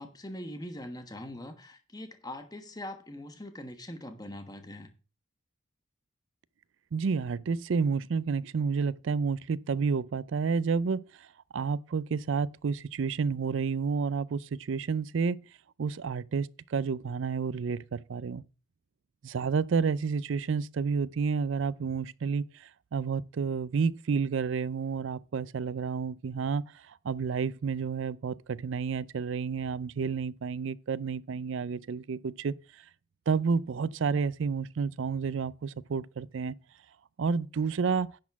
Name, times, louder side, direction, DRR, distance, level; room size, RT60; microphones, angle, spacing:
voice 1, 0.0-4.9, left 1 dB, 20° left, 1.2 m, -42 dB
voice 2, 6.9-11.3 11.5-15.5 15.8-18.4 19.2-32.5 33.3-36.5 37.2-38.1, right 5 dB, 65° right, 0.4 m, -30 dB
10.5 x 4.2 x 7.1 m
head